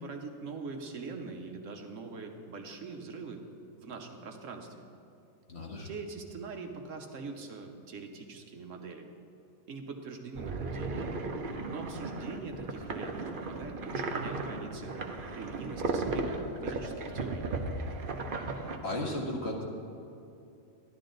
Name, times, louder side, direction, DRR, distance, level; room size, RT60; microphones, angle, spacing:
voice 1, 0.0-3.4 3.8-4.8 5.8-9.2 9.7-11.1 11.7-15.0 15.3-17.5, right 4 dB, 65° right, 4 dB, 1.1 m, -43 dB
voice 2, 5.5-5.9 18.5-19.6, left 1 dB, 45° left, -2 dB, 1.8 m, -35 dB
sound 1, 10.4-18.8, right 3 dB, 45° right, 0.8 m, -35 dB
12.0 x 11.5 x 3.9 m, 2.7 s
omnidirectional pair, 1.5 m